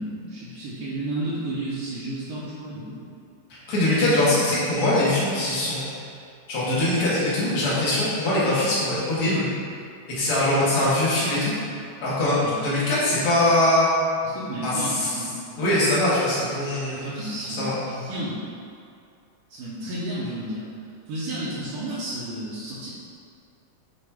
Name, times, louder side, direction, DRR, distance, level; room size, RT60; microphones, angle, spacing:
voice 1, 0.0-3.0 12.2-12.6 14.2-15.3 16.9-18.4 19.5-20.6 21.1-22.9, right 1 dB, 70° right, -10 dB, 2.1 m, -32 dB
voice 2, 3.5-5.8 6.5-9.5 10.1-11.5 12.0-13.9 14.6-15.1 15.6-17.1 17.6-17.8, left 1 dB, 50° left, -9 dB, 1.9 m, -22 dB
7.0 x 4.2 x 3.4 m, 2.4 s
omnidirectional pair, 4.5 m